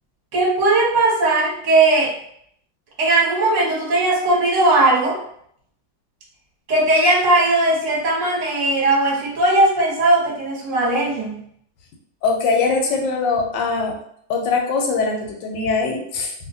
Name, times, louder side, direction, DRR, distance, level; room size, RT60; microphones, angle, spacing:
voice 1, 0.3-2.1 3.0-5.2 6.7-11.4, right 2 dB, 50° right, -4 dB, 1.0 m, -18 dB
voice 2, 12.2-13.9 14.3-16.3, left 4 dB, 75° left, 2 dB, 1.1 m, -21 dB
2.8 x 2.6 x 2.6 m, 0.68 s
omnidirectional pair, 2.1 m